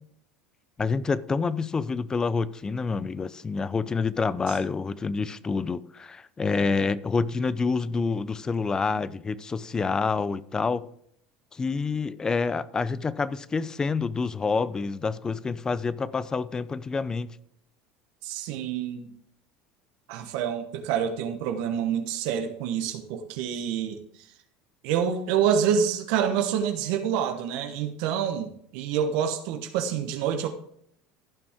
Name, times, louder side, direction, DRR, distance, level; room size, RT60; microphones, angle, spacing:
voice 1, 0.8-10.9 11.5-17.4, left 4 dB, 20° left, 0.6 m, -27 dB
voice 2, 18.2-19.1 20.1-24.0 24.8-30.5, right 8 dB, 70° right, 1.1 m, -27 dB
15.0 x 6.0 x 3.6 m
supercardioid pair, 95°, 3 cm